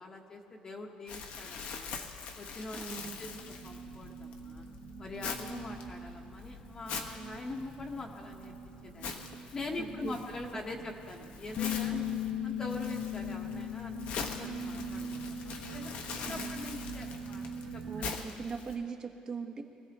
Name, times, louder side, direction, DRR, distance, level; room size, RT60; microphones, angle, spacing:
voice 1, 0.0-2.0 2.4-2.8 3.2-4.6 5.0-8.5 8.8-9.2 9.5-12.0 12.4-17.4 17.7-17.8, left 2 dB, 25° left, 1 dB, 1.2 m, -43 dB
Crumpling crinkling, 1.1-18.7, left 5 dB, 65° left, 1.3 m, -44 dB
voice 2, 2.7-3.2 9.8-10.1 11.9-12.2 16.3-16.6 17.8-19.6, right 5 dB, 30° right, 2 dB, 1.2 m, -40 dB
sound 1, 3.0-18.0, right 5 dB, 65° right, 1.8 m, -45 dB
Bass guitar, 11.6-15.9 16.2-17.8, left 14 dB, 50° left, 0.3 m, -39 dB
24.0 x 16.0 x 3.0 m, 2.5 s
cardioid pair, 150°, 2 cm